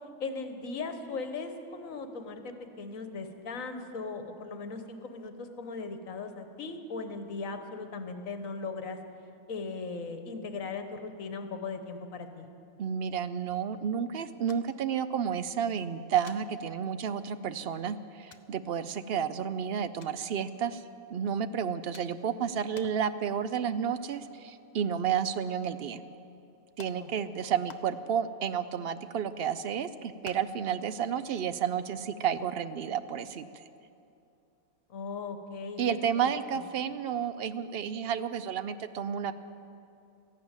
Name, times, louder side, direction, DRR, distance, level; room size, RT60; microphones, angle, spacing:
voice 1, 0.2-9.0 9.5-12.5 21.4-21.7 26.9-27.3 34.9-36.6, left 4 dB, 70° left, 7 dB, 1.5 m, -38 dB
voice 2, 12.8-20.8 21.1-26.0 26.8-33.6 35.8-39.3, right 8 dB, 60° right, 13 dB, 0.6 m, -31 dB
sound 1, 14.5-14.9 15.2-15.3 16.2-16.4 17.3-17.4 18.3-18.5 20.0-20.2 21.9-22.3 22.7-23.1 23.5-23.7 24.0-24.9 25.2-25.3 26.1-26.2 26.8-27.0 27.7-28.2 28.7-29.5 30.2-30.7 31.0-31.1 31.4-31.5 31.9-32.1, left 6 dB, 45° left, 0.6 m, -52 dB
14.0 x 11.5 x 8.9 m, 2.6 s
omnidirectional pair, 1.5 m